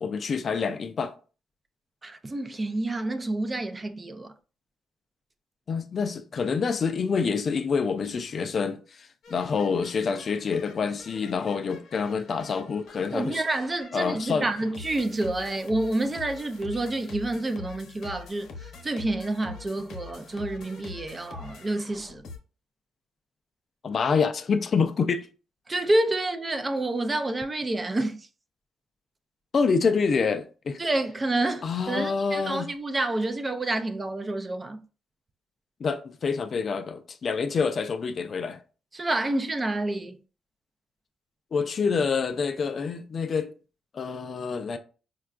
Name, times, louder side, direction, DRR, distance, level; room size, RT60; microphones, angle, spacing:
voice 1, 0.0-1.1 5.7-13.4 13.9-14.5 23.8-25.3 29.5-30.8 31.6-32.7 35.8-38.6 41.5-43.5 43.9-44.8, left 5 dB, 45° left, 0.4 m, -27 dB
voice 2, 2.0-4.3 13.1-18.5 18.8-22.2 25.7-28.2 30.8-34.8 38.9-40.2, right 2 dB, 25° right, 0.4 m, -28 dB
sound 1, 9.2-22.4, left 4 dB, 70° left, 0.8 m, -45 dB
4.4 x 2.3 x 2.4 m
cardioid pair, 90°, 0 cm